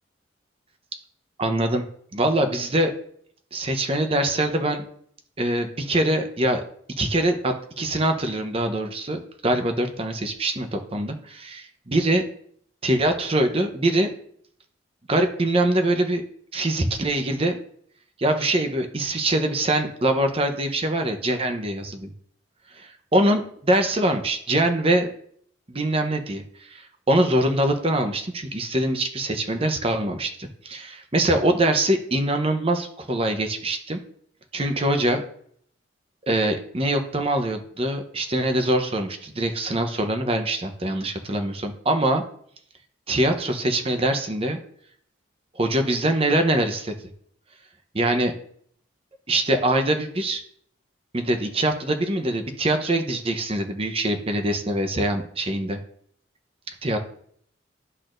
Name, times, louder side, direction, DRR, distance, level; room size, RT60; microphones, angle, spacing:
voice 1, 1.4-1.8 2.1-2.9 3.5-4.8 5.4-6.6 7.0-12.2 12.8-14.1 15.1-16.2 16.5-17.6 18.2-22.1 23.1-25.1 25.7-34.0 34.5-35.2 36.3-42.2 43.1-44.6 45.6-46.9 47.9-48.3 49.3-50.4 51.1-55.8 56.8-57.0, right 1 dB, 30° right, 6 dB, 0.8 m, -23 dB
12.0 x 4.2 x 2.5 m, 0.62 s
head